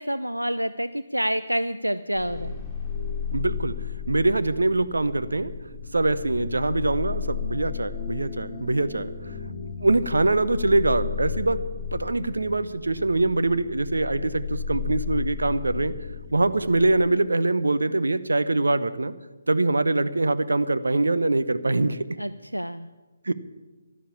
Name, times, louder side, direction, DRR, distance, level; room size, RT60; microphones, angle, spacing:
voice 1, 0.0-2.6 22.2-22.9, equal, 90° right, 13 dB, 0.5 m, -28 dB
sound 1, 2.1-17.1, left 7 dB, 5° left, 2.8 m, -34 dB
voice 2, 3.3-3.8 4.1-5.5 5.9-9.3 9.8-11.7 11.9-15.9 16.3-19.1 19.5-22.1 23.2-23.4, right 2 dB, 70° right, 14 dB, 0.8 m, -23 dB
12.5 x 11.5 x 8.5 m, 1.2 s
figure-of-eight pair, 145°, 0 cm